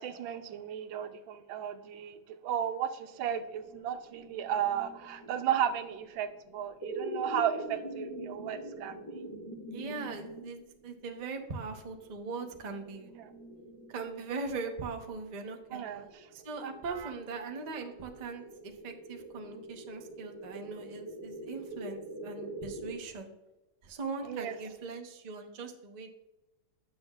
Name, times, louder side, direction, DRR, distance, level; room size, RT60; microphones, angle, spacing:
voice 1, 0.0-9.3 13.2-13.4 15.7-16.3 16.9-17.1 24.2-24.6, right 9 dB, 85° right, 9 dB, 1.4 m, -34 dB
sound 1, 3.1-22.9, right 1 dB, 20° left, 0.8 m, -45 dB
voice 2, 9.7-13.1 13.9-15.8 16.3-23.3 23.8-26.1, right 4 dB, 65° right, 4 dB, 0.4 m, -40 dB
9.8 x 6.9 x 2.3 m, 1.0 s
omnidirectional pair, 2.1 m